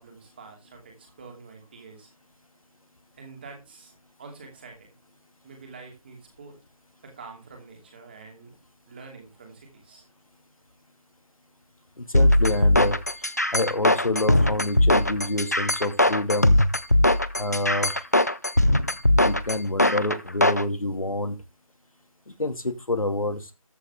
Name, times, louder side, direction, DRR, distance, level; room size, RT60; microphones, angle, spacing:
voice 1, 0.0-2.1 3.1-4.9 5.4-6.6 7.0-8.5 8.9-10.0, right 4 dB, 15° right, 2 dB, 2.7 m, -46 dB
voice 2, 12.0-13.0 13.5-16.6 17.4-18.0 19.1-21.4 22.3-23.5, left 2 dB, 70° left, 7 dB, 2.5 m, -27 dB
sound 1, 12.1-20.6, left 1 dB, 30° left, 0.5 m, -20 dB
13.5 x 7.9 x 3.7 m, 0.26 s
figure-of-eight pair, 165°, 19 cm